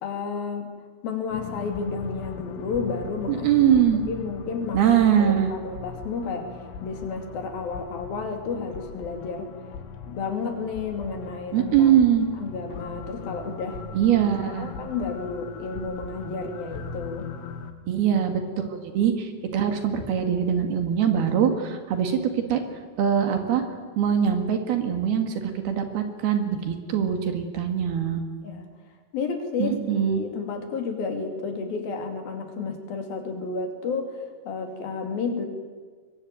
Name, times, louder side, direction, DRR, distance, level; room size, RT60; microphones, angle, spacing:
voice 1, 0.0-0.7 1.0-3.5 3.9-4.8 5.2-6.5 6.8-9.5 10.1-11.9 12.4-13.8 14.2-17.3 28.4-28.7 29.1-35.5, left 4 dB, 60° left, 5 dB, 4.2 m, -31 dB
sound 1, 1.3-17.7, left 5 dB, 85° left, 4.1 m, -40 dB
voice 2, 3.3-4.0 4.7-5.5 11.5-12.3 13.9-14.7 17.9-22.6 23.0-23.6 24.0-28.2 29.6-30.2, right 9 dB, 65° right, 6 dB, 3.8 m, -22 dB
23.0 x 22.5 x 9.3 m, 1.5 s
omnidirectional pair, 5.0 m